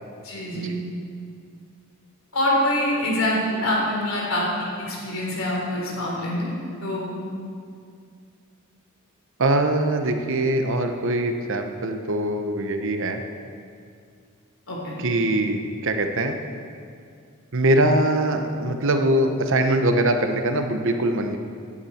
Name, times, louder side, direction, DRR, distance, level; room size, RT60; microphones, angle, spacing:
voice 1, 0.2-0.8 2.3-6.5 6.8-7.1 14.7-14.9, left 1 dB, 65° left, -3 dB, 3.6 m, -25 dB
voice 2, 9.4-13.2 15.0-16.4 17.5-21.4, right 1 dB, 65° right, 6 dB, 0.9 m, -22 dB
15.5 x 11.0 x 4.3 m, 2.3 s
head